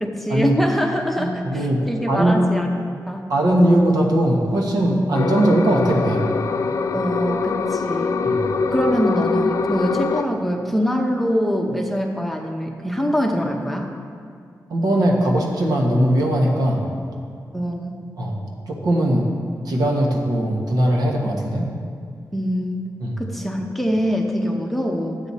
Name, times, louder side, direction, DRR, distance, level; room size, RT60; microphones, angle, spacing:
voice 1, 0.0-2.7 3.1-3.3 6.9-8.2 8.7-13.9 17.5-17.9 22.3-22.8 23.2-25.2, equal, ahead, 1 dB, 0.8 m, -24 dB
voice 2, 1.2-2.4 3.3-6.3 8.2-8.5 14.7-16.9 18.2-19.3 19.6-21.7 23.0-23.2, right 1 dB, 80° right, -1 dB, 1.4 m, -20 dB
sound 1, 5.1-10.2, left 4 dB, 50° left, 0.4 m, -23 dB
11.5 x 8.1 x 4.2 m, 2.2 s
wide cardioid pair, 150°, 7 cm